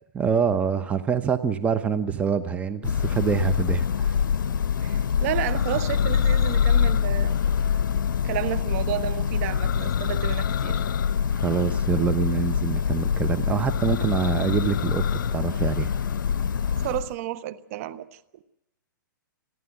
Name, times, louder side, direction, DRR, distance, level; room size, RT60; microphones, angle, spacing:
voice 1, 0.2-4.2 11.4-15.0 15.3-15.9, right 6 dB, 10° right, 8 dB, 1.0 m, -25 dB
Church bell, 2.8-17.1, left 7 dB, 70° left, 0.8 m, -25 dB
voice 2, 4.8-7.4 8.2-10.8 16.8-18.2, right 13 dB, 45° right, 14 dB, 1.2 m, -31 dB
29.0 x 11.0 x 9.1 m, 0.88 s
hypercardioid pair, 130°, 11 cm